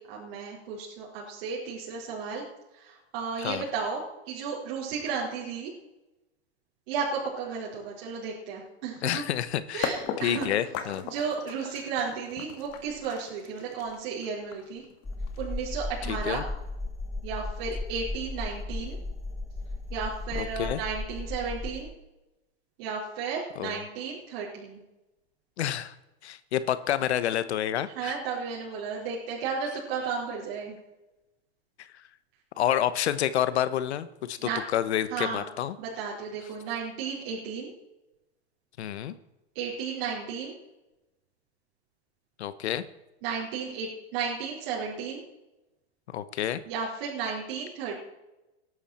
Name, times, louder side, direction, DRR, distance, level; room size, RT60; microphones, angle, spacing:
voice 1, 0.0-2.4 2.7-5.7 6.9-9.2 9.7-10.7 11.0-14.8 15.4-16.4 17.2-19.0 19.9-21.9 22.8-24.8 27.9-30.8 34.4-34.6 35.1-35.5 35.8-37.7 39.5-40.5 43.2-45.2 46.7-48.0, right 5 dB, 55° right, -5 dB, 4.5 m, -33 dB
voice 2, 9.0-11.0 16.1-16.4 20.3-20.8 23.6-23.8 25.6-25.9 26.2-28.1 31.8-31.9 32.6-35.7 38.8-39.1 42.4-42.8 46.1-46.6, left 11 dB, 85° left, 14 dB, 1.1 m, -29 dB
sound 1, 9.8-15.7, left 8 dB, 45° left, 2.1 m, -37 dB
sound 2, 15.0-21.8, left 2 dB, 10° left, 1.5 m, -35 dB
17.5 x 11.5 x 4.4 m, 0.98 s
hypercardioid pair, 130°, 32 cm